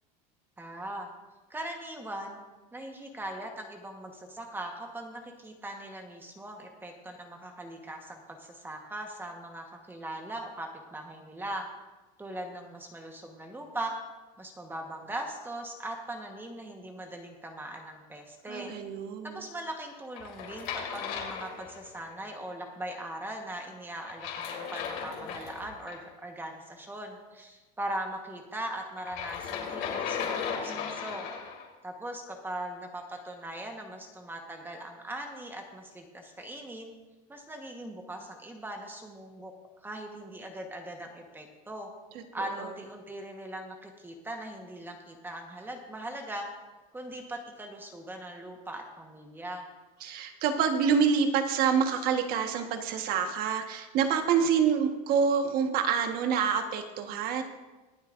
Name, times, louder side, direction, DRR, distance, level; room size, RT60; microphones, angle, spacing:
voice 1, 0.6-1.1 1.5-2.4 2.7-11.6 12.2-13.9 14.4-18.7 19.2-31.3 31.8-36.9 37.3-39.5 39.8-41.9 42.3-46.5 46.9-49.6, right 1 dB, 10° right, 3 dB, 1.2 m, -40 dB
voice 2, 18.5-19.5 42.4-42.7 50.0-57.4, right 6 dB, 55° right, 6 dB, 1.4 m, -27 dB
sound 1, 20.1-22.1 24.0-26.0 29.0-31.7, left 7 dB, 60° left, 2.6 m, -36 dB
24.0 x 8.2 x 2.6 m, 1.2 s
supercardioid pair, 135°, 19 cm